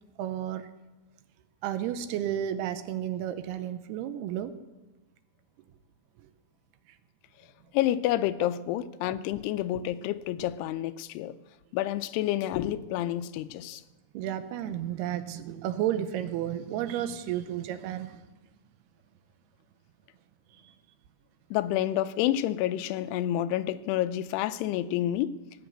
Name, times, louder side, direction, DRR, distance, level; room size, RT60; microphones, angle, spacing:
voice 1, 0.2-0.7 1.6-4.5 6.2-6.3 14.1-18.3 20.6-20.7, right 11 dB, 80° right, 11 dB, 2.7 m, -32 dB
voice 2, 7.7-11.4 11.7-13.8 21.5-25.4, left 13 dB, 85° left, 13 dB, 2.7 m, -29 dB
18.5 x 6.9 x 7.9 m, 1.1 s
omnidirectional pair, 4.7 m